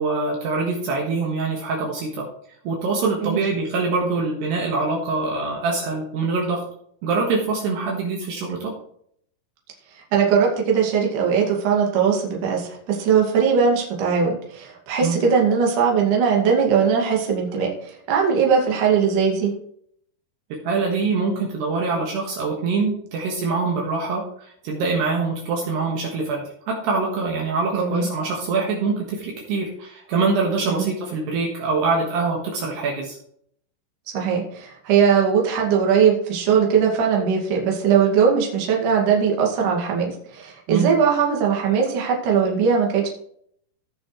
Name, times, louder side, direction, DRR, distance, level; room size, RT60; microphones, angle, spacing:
voice 1, 0.0-2.3 2.7-6.6 7.0-8.8 15.0-15.2 20.7-33.2 40.7-40.9, right 4 dB, 70° right, -1 dB, 3.6 m, -24 dB
voice 2, 10.1-19.5 27.7-28.1 30.7-30.9 34.1-43.1, right 6 dB, 50° right, -1 dB, 3.4 m, -20 dB
17.0 x 6.2 x 3.3 m, 0.65 s
omnidirectional pair, 5.2 m